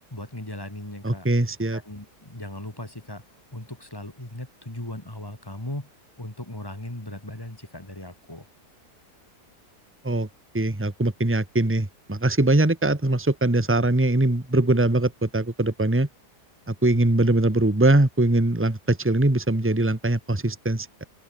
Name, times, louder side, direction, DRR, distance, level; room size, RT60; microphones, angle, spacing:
voice 1, 0.1-1.3 1.7-3.2 3.5-5.9 6.2-8.4 16.9-17.1, left 1 dB, 15° left, 2.9 m, -38 dB
voice 2, 1.0-1.8 10.0-10.3 10.5-16.1 16.7-21.0, right 2 dB, 10° right, 1.8 m, -22 dB
open air
omnidirectional pair, 1.7 m